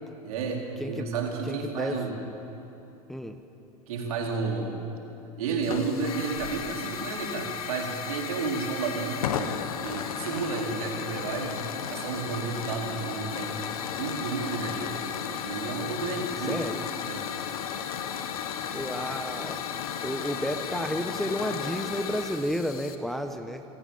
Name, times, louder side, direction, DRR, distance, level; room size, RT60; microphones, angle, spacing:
voice 1, 0.2-2.1 3.9-4.8 5.4-11.6 11.9-13.6 13.9-15.0 15.4-16.6 17.1-17.2, right 4 dB, 70° right, 0 dB, 4.1 m, -32 dB
voice 2, 1.4-2.1 3.1-3.4 16.4-16.8 18.7-19.6 20.0-23.6, equal, ahead, 6 dB, 1.2 m, -32 dB
Hiss / Fire, 5.6-23.0, left 8 dB, 75° left, 1.5 m, -34 dB
26.5 x 17.0 x 7.3 m, 2.9 s
hypercardioid pair, 90°, 19 cm